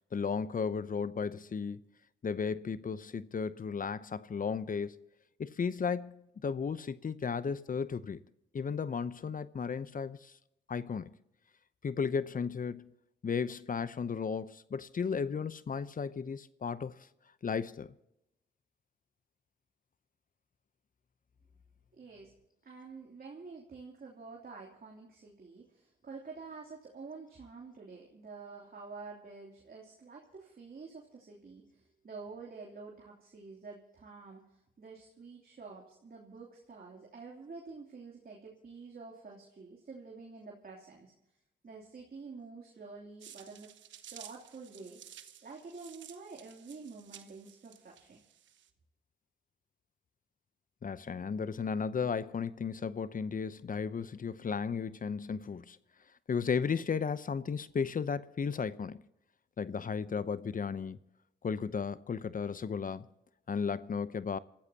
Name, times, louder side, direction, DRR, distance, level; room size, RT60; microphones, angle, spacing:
voice 1, 0.1-1.8 2.2-5.1 5.4-8.2 8.5-10.3 10.7-11.1 11.8-12.9 13.2-16.9 17.4-17.9 50.8-55.8 56.3-59.0 59.6-61.0 61.4-63.1 63.5-64.4, left 6 dB, 45° left, 0.8 m, -34 dB
voice 2, 21.9-22.3 22.6-41.1 41.6-43.7 44.1-45.0 45.4-48.2, right 4 dB, 50° right, 3.0 m, -48 dB
sound 1, 43.2-48.7, right 10 dB, 80° right, 1.1 m, -54 dB
27.5 x 14.0 x 2.9 m
supercardioid pair, 45°, 19 cm